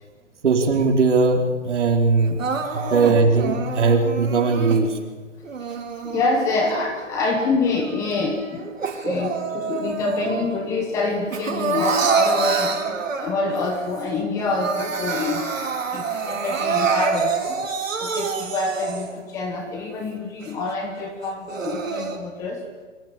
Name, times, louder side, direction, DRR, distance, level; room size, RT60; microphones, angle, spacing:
voice 1, 0.4-2.5 2.7-5.0, right 4 dB, 65° right, 2 dB, 4.5 m, -19 dB
Crying sobbing, 2.4-4.8 5.4-7.2 7.7-10.6 10.9-13.6 14.0-14.1 14.4-19.2 19.8-19.9 20.4-20.5 21.2-22.2, right 5 dB, 90° right, 5.3 m, -27 dB
voice 2, 5.6-8.7 9.0-17.7 18.0-22.6, left 3 dB, 10° left, 4 dB, 1.0 m, -26 dB
24.5 x 24.5 x 7.7 m, 1.4 s
hypercardioid pair, 165°, 38 cm